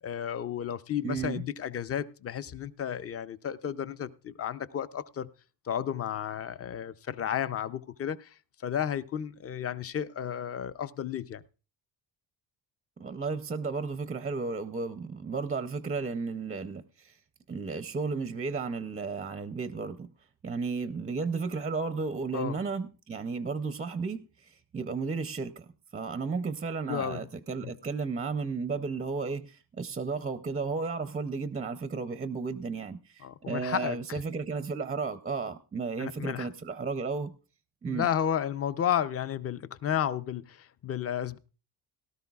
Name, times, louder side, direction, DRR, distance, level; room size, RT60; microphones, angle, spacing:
voice 1, 0.0-5.3 5.6-11.4 22.3-22.6 26.9-27.3 27.6-27.7 33.2-34.2 36.0-36.5 37.8-41.4, left 9 dB, 35° left, 0.5 m, -32 dB
voice 2, 1.0-1.4 13.0-17.2 17.5-20.1 20.4-37.3 37.8-38.1, right 4 dB, 20° right, 0.5 m, -33 dB
17.5 x 12.5 x 2.3 m
cardioid pair, 125°, 45 cm